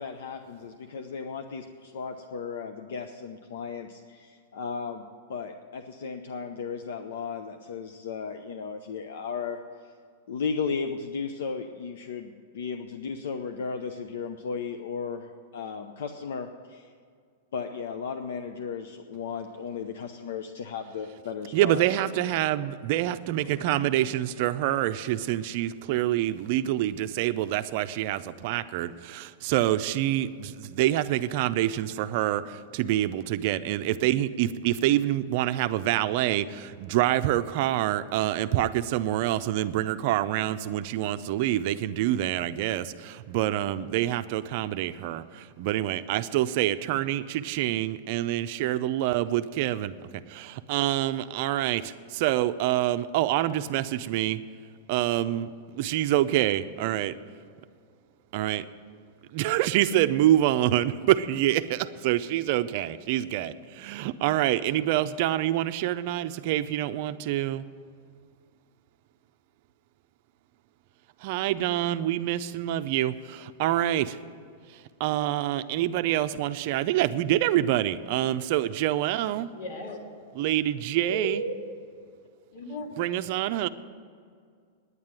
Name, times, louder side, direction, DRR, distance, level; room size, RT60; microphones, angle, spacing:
voice 1, 0.0-5.0 5.3-9.9 10.3-16.9 17.5-21.8, left 5 dB, 80° left, 6 dB, 0.7 m, -35 dB
voice 2, 21.5-49.9 50.3-54.4 54.9-57.1 58.3-58.6 59.3-67.6 71.2-74.2 75.0-79.5 80.4-81.4 83.0-83.7, right 13 dB, 50° right, 11 dB, 0.5 m, -26 dB
voice 3, 79.5-80.0 81.1-81.6 82.5-82.9, right 1 dB, 65° left, 0 dB, 3.4 m, -34 dB
9.7 x 9.4 x 8.9 m, 2.1 s
supercardioid pair, 145°, 0 cm